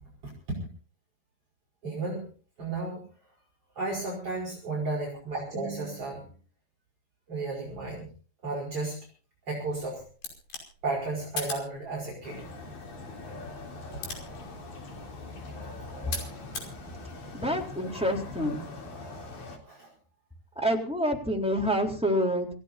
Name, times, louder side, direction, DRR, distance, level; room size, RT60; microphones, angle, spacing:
voice 1, 0.2-0.6 1.8-2.3 2.6-3.1 3.7-6.3 7.3-8.1 8.4-9.1 9.5-10.0 10.8-12.5 14.8-15.1 15.4-15.5 19.6-19.9, right 3 dB, 35° right, -3 dB, 6.6 m, -33 dB
sound 1, 9.7-16.8, left 4 dB, 85° left, 7.4 m, -42 dB
sound 2, 12.2-19.6, left 2 dB, 50° left, 4.7 m, -42 dB
voice 2, 17.3-18.9 20.5-22.5, equal, ahead, 1 dB, 3.1 m, -28 dB
28.0 x 16.5 x 2.7 m, 0.41 s
omnidirectional pair, 4.5 m